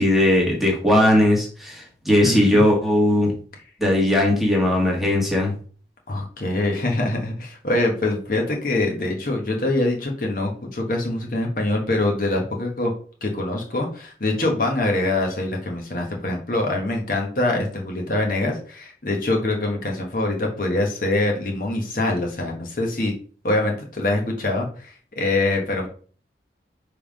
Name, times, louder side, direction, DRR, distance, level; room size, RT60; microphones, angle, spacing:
voice 1, 0.0-3.3 3.8-5.5, left 1 dB, ahead, -2 dB, 1.5 m, -18 dB
voice 2, 2.2-2.6 6.1-12.9 13.2-23.1 23.4-25.9, left 2 dB, 50° left, 1 dB, 1.2 m, -24 dB
5.4 x 3.5 x 5.1 m, 0.42 s
head